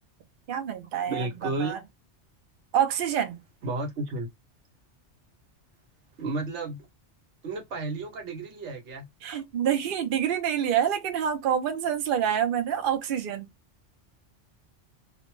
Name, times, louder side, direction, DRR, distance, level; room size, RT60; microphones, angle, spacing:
voice 1, 0.5-1.8 2.7-3.4 9.2-13.5, right 9 dB, 60° right, 0.6 m, -27 dB
voice 2, 1.1-1.8 3.6-4.3 6.2-6.9 7.4-9.1, right 3 dB, 75° right, 1.1 m, -32 dB
2.5 x 2.0 x 3.0 m
omnidirectional pair, 1.2 m